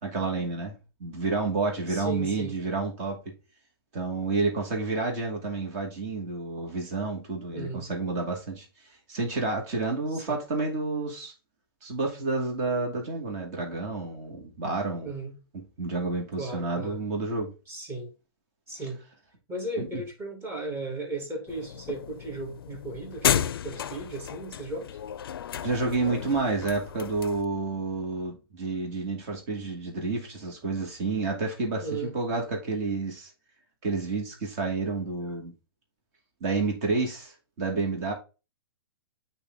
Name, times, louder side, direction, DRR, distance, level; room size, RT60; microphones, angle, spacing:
voice 1, 0.0-3.3 3.9-8.7 9.1-11.3 11.8-15.1 15.5-17.5 19.8-20.0 25.6-33.3 33.8-35.5 36.4-38.1, right 3 dB, 40° right, 2.1 m, -30 dB
voice 2, 1.9-2.6 7.5-7.9 10.1-10.4 15.0-15.4 16.4-17.0 17.7-18.1 18.7-19.0 19.5-24.9 31.8-32.1 35.2-35.3, right 2 dB, 20° right, 1.9 m, -36 dB
sound 1, 21.5-27.4, left 9 dB, 80° left, 0.4 m, -32 dB
8.6 x 2.9 x 3.7 m
hypercardioid pair, 145°, 12 cm